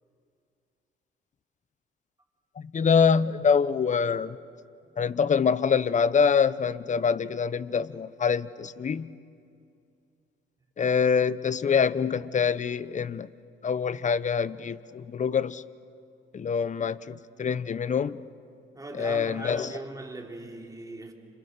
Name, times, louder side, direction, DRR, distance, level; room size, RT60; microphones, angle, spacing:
voice 1, 2.7-4.4 5.0-9.2 10.8-13.3 13.6-15.6 16.3-18.2 18.9-19.7, left 6 dB, 40° left, 17 dB, 0.8 m, -25 dB
voice 2, 18.7-21.1, right 2 dB, 15° right, 2 dB, 3.4 m, -39 dB
29.5 x 27.0 x 6.6 m, 2.5 s
cardioid pair, 90°, 20 cm